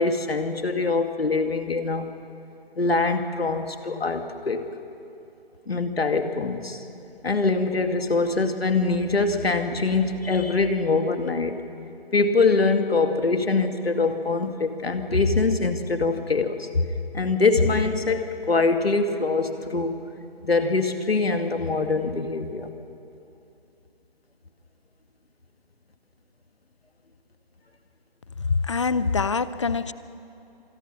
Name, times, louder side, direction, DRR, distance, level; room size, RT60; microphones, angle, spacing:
voice 1, 0.0-2.1 2.8-4.6 5.7-6.8 7.2-11.6 12.1-16.8 17.1-20.0 20.4-22.7, left 3 dB, 80° left, 6 dB, 2.3 m, -23 dB
voice 2, 28.4-29.9, left 4 dB, 30° left, 16 dB, 0.6 m, -24 dB
26.5 x 20.5 x 6.2 m, 2.7 s
figure-of-eight pair, 155°, 30 cm